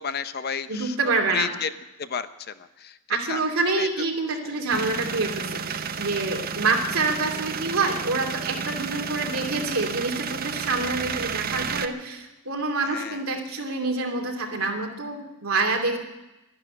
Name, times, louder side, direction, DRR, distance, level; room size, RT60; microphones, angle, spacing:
voice 1, 0.0-1.0 1.3-1.7 2.0-3.0 3.3-3.4 3.8-3.9 4.4-4.6 12.8-13.2, left 7 dB, 50° left, 12 dB, 0.7 m, -32 dB
voice 2, 0.7-1.5 3.1-16.0, right 3 dB, 85° right, 2 dB, 2.7 m, -27 dB
sound 1, 4.7-11.9, right 6 dB, 45° right, 0.7 m, -31 dB
12.5 x 11.5 x 9.8 m, 0.99 s
head